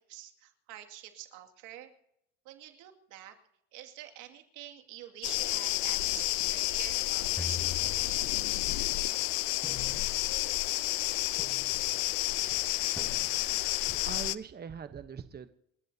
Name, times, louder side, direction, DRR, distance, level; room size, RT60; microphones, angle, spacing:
voice 1, 0.0-1.9 2.4-3.4 3.7-8.2, right 13 dB, 75° right, 4 dB, 2.4 m, -47 dB
sound 1, 5.2-14.3, left 20 dB, 85° left, 0.7 m, -30 dB
sound 2, 7.3-8.6 9.6-10.4 11.4-12.0 13.0-13.6, left 2 dB, 10° left, 6.7 m, -44 dB
voice 2, 13.9-15.5, right 7 dB, 30° right, 10 dB, 1.0 m, -42 dB
29.0 x 14.5 x 2.8 m, 0.79 s
supercardioid pair, 75°, 31 cm